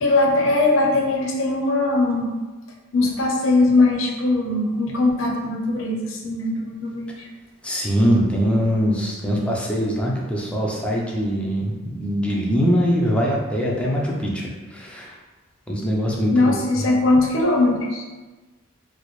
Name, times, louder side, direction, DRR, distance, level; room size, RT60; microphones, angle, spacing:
voice 1, 0.0-2.3 2.9-7.3 16.3-18.0, left 2 dB, 70° left, 0 dB, 0.6 m, -20 dB
voice 2, 7.6-15.2 15.7-16.9, equal, 5° left, -3 dB, 0.5 m, -22 dB
4.2 x 2.0 x 3.1 m, 1.2 s
head